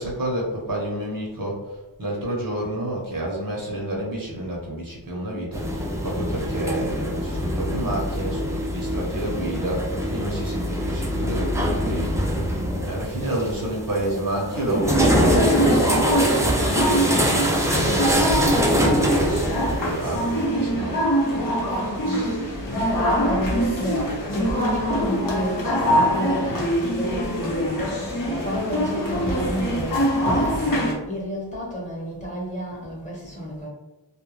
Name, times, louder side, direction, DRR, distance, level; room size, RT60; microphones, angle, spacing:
voice 1, 0.0-12.1 12.9-17.3 17.7-21.0, right 1 dB, 50° right, -2 dB, 0.8 m, -29 dB
sound 1, 5.5-20.5, equal, 5° right, 0.4 m, -24 dB
sound 2, 14.9-30.9, equal, 50° left, 0.8 m, -24 dB
voice 2, 21.3-22.2 23.0-28.0 28.3-33.7, equal, 15° left, -5 dB, 1.1 m, -31 dB
2.4 x 2.2 x 3.1 m, 1.1 s
wide cardioid pair, 80°, 44 cm